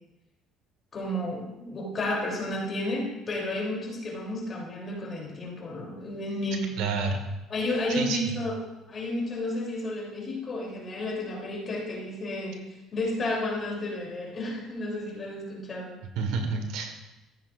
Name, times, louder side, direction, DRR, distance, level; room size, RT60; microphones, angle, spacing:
voice 1, 0.9-6.7 7.5-8.6 8.9-16.0, left 1 dB, 35° left, -2 dB, 3.3 m, -32 dB
voice 2, 6.8-7.2 7.9-8.4 16.1-17.0, right 4 dB, 80° right, 5 dB, 1.5 m, -29 dB
14.0 x 9.6 x 2.6 m, 0.99 s
cardioid pair, 110°, 0 cm